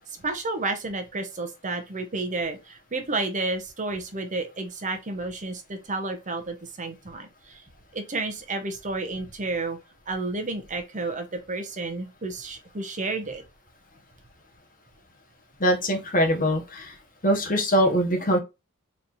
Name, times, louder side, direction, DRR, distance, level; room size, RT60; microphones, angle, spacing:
voice 1, 0.2-7.6 7.9-9.8 10.1-13.4, right 3 dB, 35° right, 0.9 m, -31 dB
voice 2, 15.6-16.9 17.2-18.4, equal, 40° left, 1.3 m, -22 dB
4.1 x 3.3 x 2.6 m
head